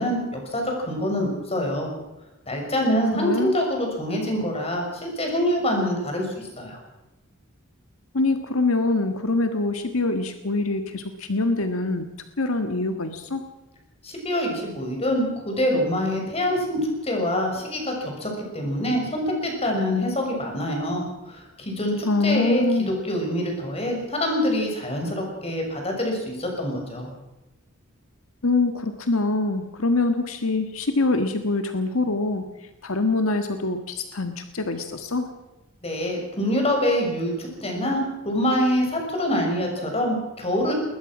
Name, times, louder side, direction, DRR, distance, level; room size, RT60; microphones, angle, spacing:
voice 1, 0.0-1.9 2.5-6.8 14.0-27.1 35.8-40.8, equal, 30° left, 2 dB, 6.5 m, -25 dB
voice 2, 3.1-3.6 8.1-12.1 12.4-13.5 22.0-22.9 28.4-35.3, left 3 dB, 80° left, 7 dB, 1.6 m, -24 dB
21.0 x 20.5 x 6.2 m, 1.0 s
head